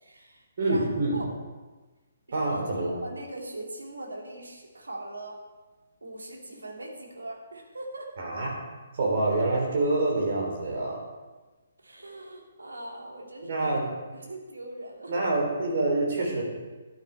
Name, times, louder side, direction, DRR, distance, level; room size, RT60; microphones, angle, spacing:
voice 1, 0.0-1.3 2.3-2.6 2.9-5.4 6.0-8.1 11.8-13.8 14.1-15.3, right 1 dB, 70° right, 0 dB, 2.4 m, -40 dB
voice 2, 0.6-1.2 2.3-3.0 8.2-8.6 8.9-11.0 13.4-13.9 15.1-16.4, right 2 dB, 45° right, 0 dB, 3.4 m, -26 dB
11.5 x 8.9 x 4.5 m, 1.2 s
figure-of-eight pair, 135°, 0 cm